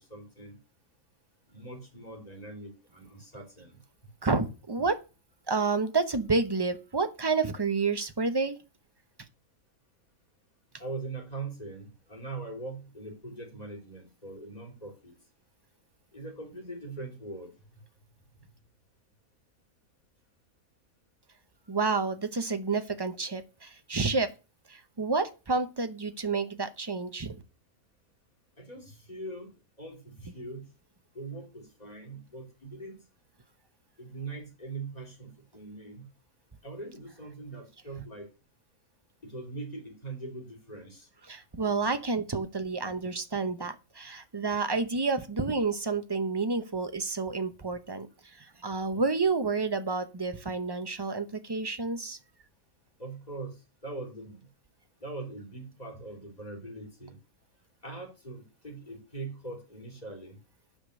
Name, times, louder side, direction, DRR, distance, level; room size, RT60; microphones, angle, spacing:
voice 1, 0.1-0.6 1.5-3.8 10.8-15.1 16.1-17.5 28.6-29.5 29.8-30.6 31.1-33.0 34.0-36.1 36.6-38.3 39.2-41.1 53.0-54.5 55.0-57.2 57.8-60.4, right 3 dB, 25° left, 0 dB, 3.2 m, -41 dB
voice 2, 4.2-5.0 5.5-8.6 21.7-24.3 24.7-27.3 41.3-48.1 48.3-52.2, right 4 dB, 25° right, 9 dB, 0.5 m, -29 dB
9.4 x 5.1 x 6.4 m, 0.31 s
omnidirectional pair, 1.5 m